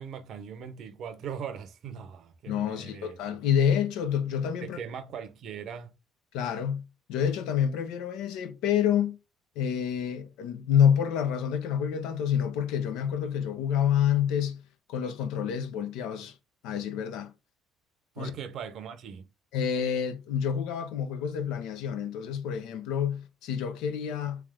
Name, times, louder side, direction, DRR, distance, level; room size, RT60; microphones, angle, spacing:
voice 1, 0.0-3.4 4.6-5.9 18.1-19.3, right 7 dB, 65° right, 0.8 m, -40 dB
voice 2, 2.5-4.8 6.3-6.8 7.1-9.2 9.6-14.6 14.9-16.4 16.6-17.3 18.2-18.3 19.5-24.4, left 8 dB, 80° left, 0.7 m, -28 dB
3.5 x 3.1 x 3.6 m
supercardioid pair, 70°, 0 cm